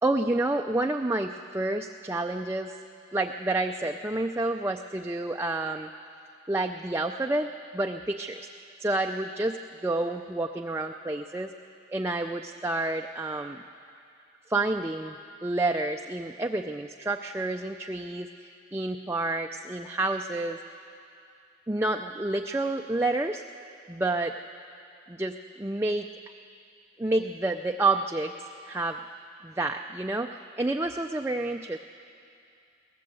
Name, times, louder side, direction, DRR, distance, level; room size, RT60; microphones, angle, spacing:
voice 1, 0.0-2.8 3.1-5.9 6.5-8.5 8.8-9.6 9.8-11.5 11.9-13.6 14.5-15.2 15.4-20.6 21.7-23.4 23.9-24.3 25.1-26.1 27.0-28.3 28.7-29.0 29.4-31.8, right 2 dB, 15° right, 3 dB, 0.4 m, -29 dB
22.5 x 17.5 x 7.7 m, 2.5 s
head